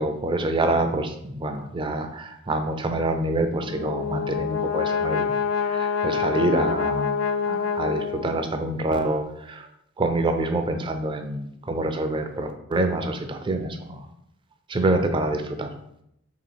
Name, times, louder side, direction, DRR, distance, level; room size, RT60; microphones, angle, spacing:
voice 1, 0.0-5.3 5.6-7.1 7.5-9.7 10.0-14.0 14.7-15.7, right 2 dB, 25° right, 6 dB, 0.4 m, -26 dB
Brass instrument, 3.5-8.6, left 6 dB, 85° left, 0.3 m, -26 dB
3.0 x 2.9 x 4.2 m, 0.76 s
head